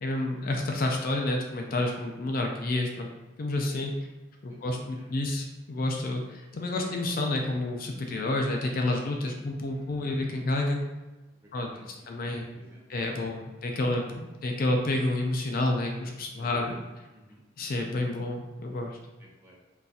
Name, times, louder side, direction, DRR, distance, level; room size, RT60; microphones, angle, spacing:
voice 1, 0.0-3.1 3.4-3.9 4.4-10.8 11.5-12.5 12.9-16.7 17.6-19.0, left 2 dB, 50° left, 2 dB, 0.4 m, -29 dB
voice 2, 4.5-5.1 9.4-10.1 11.4-12.8 13.1-13.8 16.4-16.8 17.1-17.4 19.2-19.6, equal, 10° right, -4 dB, 0.6 m, -55 dB
3.8 x 2.7 x 2.4 m, 1.1 s
head